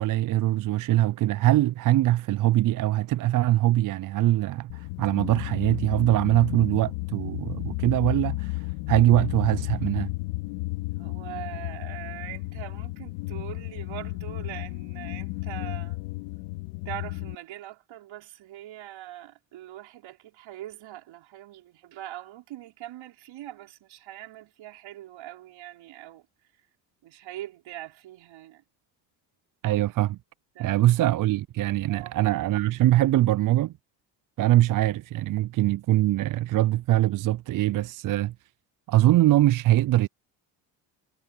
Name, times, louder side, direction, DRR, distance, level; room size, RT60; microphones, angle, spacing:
voice 1, 0.0-10.1 29.6-30.2 30.6-33.7 34.4-38.3 38.9-40.1, right 15 dB, 45° right, 0.5 m, -23 dB
sound 1, 4.7-17.3, left 22 dB, 85° left, 2.5 m, -33 dB
voice 2, 10.9-16.0 16.9-26.3 26.5-26.7 27.0-28.6 30.6-30.9 31.9-32.3, right 14 dB, 65° right, 5.5 m, -42 dB
supercardioid pair, 65°, 49 cm